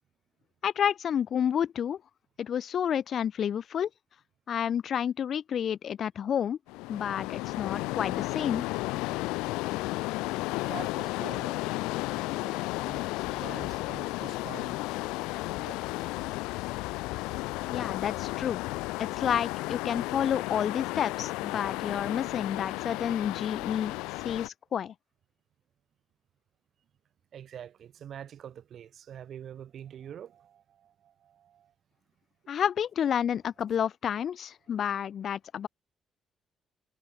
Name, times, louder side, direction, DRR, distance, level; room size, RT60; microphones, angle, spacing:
voice 1, 0.6-2.0 2.4-3.9 4.5-6.6 6.9-8.6 17.7-18.6 19.0-23.9 24.2-24.9 32.5-35.7, left 9 dB, 65° left, 0.9 m, -30 dB
sound 1, 6.7-24.5, left 22 dB, 85° left, 0.9 m, -33 dB
voice 2, 10.5-14.8 15.6-16.3 27.3-31.7, right 9 dB, 65° right, 3.8 m, -46 dB
hypercardioid pair, 50°, 0 cm